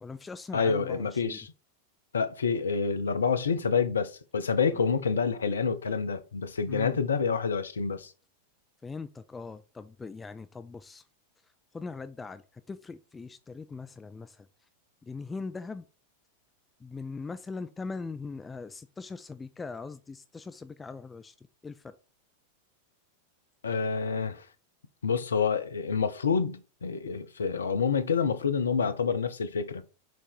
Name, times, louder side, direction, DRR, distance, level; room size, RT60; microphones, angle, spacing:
voice 1, 0.0-1.4 4.7-4.9 6.7-7.0 8.8-11.0 11.7-12.4 12.7-14.5 15.0-15.8 16.8-21.3 21.6-21.9, left 4 dB, 15° left, 0.4 m, -40 dB
voice 2, 0.5-1.5 2.1-8.1 23.6-24.4 25.0-29.8, left 5 dB, 70° left, 0.7 m, -28 dB
6.3 x 3.8 x 4.5 m
figure-of-eight pair, 90°, 0 cm